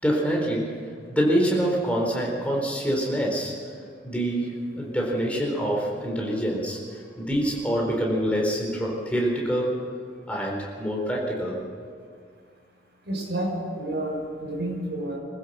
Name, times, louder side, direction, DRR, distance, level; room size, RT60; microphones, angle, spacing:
voice 1, 0.0-0.7 1.1-3.5 4.0-6.8 7.2-9.8 10.3-11.6, equal, 5° left, -2 dB, 4.0 m, -25 dB
voice 2, 13.0-15.2, right 1 dB, 70° right, -2 dB, 6.8 m, -30 dB
25.5 x 15.0 x 6.8 m, 2.1 s
head